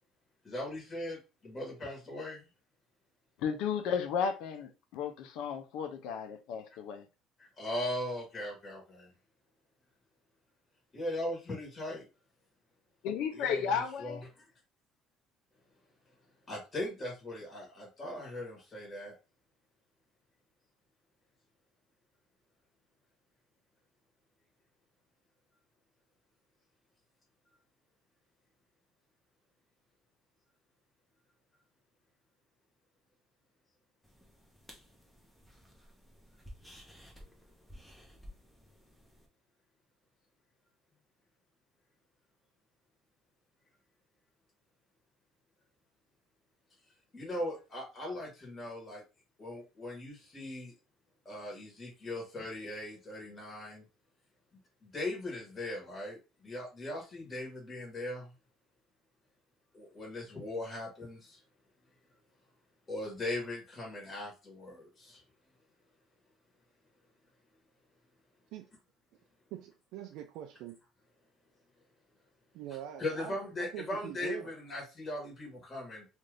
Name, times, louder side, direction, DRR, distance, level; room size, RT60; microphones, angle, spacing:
voice 1, 0.4-2.5 7.4-9.1 10.9-12.1 13.3-14.5 16.5-19.1 47.1-49.0 49.4-50.7 51.2-53.8 54.8-58.3 59.7-61.4 62.9-65.2 73.0-76.0, left 1 dB, 25° left, 1.3 m, -39 dB
voice 2, 3.4-7.0 13.0-14.2, left 7 dB, 75° left, 0.5 m, -34 dB
sound 1, 34.0-39.3, equal, ahead, 0.8 m, -55 dB
voice 3, 69.5-70.8 72.5-74.5, right 11 dB, 75° right, 0.4 m, -43 dB
2.6 x 2.4 x 3.3 m
cardioid pair, 125°, 0 cm